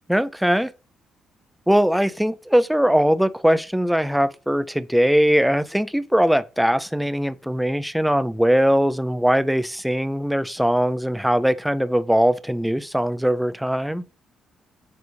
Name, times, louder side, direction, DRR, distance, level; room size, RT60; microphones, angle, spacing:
voice 1, 0.1-0.7 1.7-14.0, equal, ahead, 0.4 m, -20 dB
9.4 x 3.4 x 6.2 m
cardioid pair, 170°, 0 cm